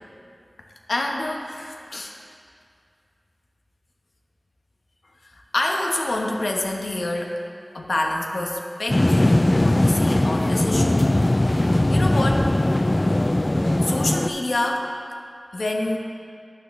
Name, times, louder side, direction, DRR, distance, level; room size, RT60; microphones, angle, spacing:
voice 1, 0.9-2.1 5.2-7.4 7.7-11.0 11.4-12.5 13.8-14.9 15.5-16.0, left 2 dB, 90° left, 0 dB, 1.0 m, -27 dB
sound 1, 8.9-14.3, left 1 dB, 35° left, 0.3 m, -19 dB
12.0 x 9.5 x 3.2 m, 2.3 s
wide cardioid pair, 60°, 0 cm